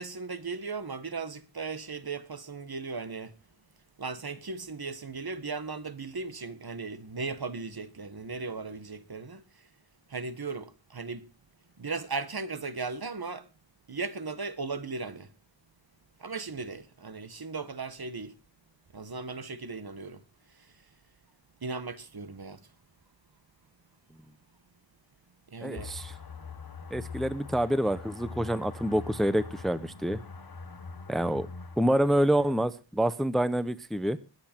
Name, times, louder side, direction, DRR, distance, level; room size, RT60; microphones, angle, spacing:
voice 1, 0.0-3.3 4.0-9.4 10.1-11.3 11.8-13.4 13.9-15.3 16.2-18.3 18.9-20.2 21.6-22.6 25.5-25.9, right 4 dB, 55° right, 1.3 m, -37 dB
voice 2, 25.6-26.1 26.9-30.2 31.1-31.5 31.8-34.2, equal, ahead, 0.7 m, -27 dB
sound 1, 25.7-32.5, left 5 dB, 50° left, 1.3 m, -43 dB
21.0 x 8.2 x 4.4 m
wide cardioid pair, 75°, 45 cm